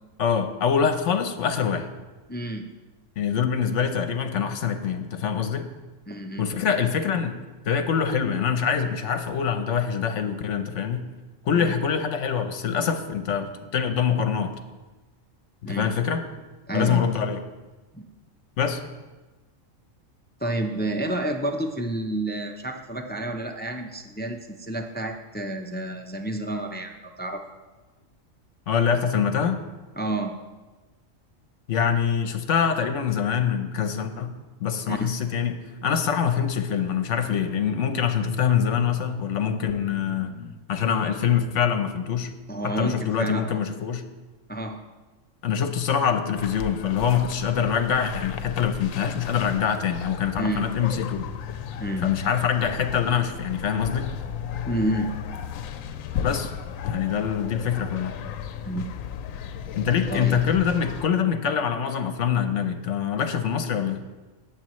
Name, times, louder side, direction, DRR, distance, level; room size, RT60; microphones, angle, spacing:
voice 1, 0.2-1.9 3.2-5.7 6.4-7.4 7.6-11.1 11.5-14.5 15.7-16.2 16.7-17.4 18.6-18.8 28.7-29.6 31.7-34.3 34.6-42.3 42.6-44.0 45.4-51.2 52.0-54.1 56.2-56.5 56.9-58.1 59.7-64.0, left 7 dB, 65° left, 8 dB, 1.1 m, -24 dB
voice 2, 2.3-2.7 6.1-6.5 11.5-11.7 15.6-15.9 16.7-17.0 17.9-18.1 20.4-27.4 30.0-30.3 34.9-35.1 42.5-43.6 44.5-44.8 50.4-50.7 51.8-52.0 54.7-55.1 58.6-58.9 60.1-60.4, right 1 dB, 15° left, 4 dB, 0.4 m, -29 dB
sound 1, 46.3-61.1, left 8 dB, 80° left, 1.0 m, -35 dB
17.5 x 7.5 x 3.1 m, 1.2 s
omnidirectional pair, 1.4 m